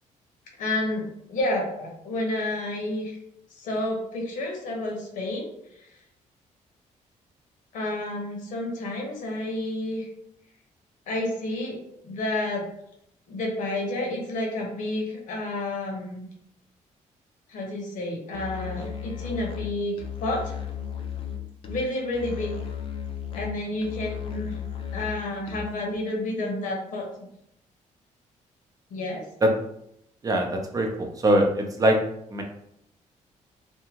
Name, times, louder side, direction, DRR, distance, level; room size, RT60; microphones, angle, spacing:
voice 1, 0.6-3.2 3.5-5.5 5.7-6.0 7.7-10.1 11.1-12.7 13.3-16.3 17.5-20.5 21.7-22.5 23.3-24.6 24.9-27.0 28.9-29.2, left 1 dB, 85° left, 0 dB, 0.9 m, -30 dB
Musical instrument, 18.3-25.9, left 8 dB, 45° left, 0.4 m, -35 dB
voice 2, 30.2-30.9 31.2-32.0 32.3-32.4, right 1 dB, 30° right, 2 dB, 0.5 m, -21 dB
2.7 x 2.4 x 2.7 m, 0.75 s
cardioid pair, 135°, 13 cm